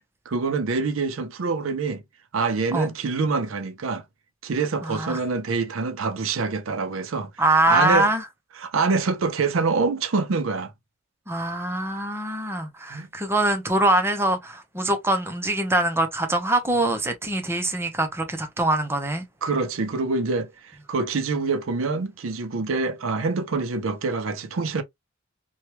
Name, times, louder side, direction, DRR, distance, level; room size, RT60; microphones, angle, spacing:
voice 1, 0.3-2.0 2.3-4.0 4.4-7.3 7.7-8.1 8.6-10.7 12.9-13.1 19.4-24.8, right 4 dB, 75° right, 0.6 m, -25 dB
voice 2, 4.8-5.2 7.4-8.3 11.3-19.2, right 1 dB, 10° right, 0.7 m, -23 dB
3.0 x 2.3 x 2.9 m
head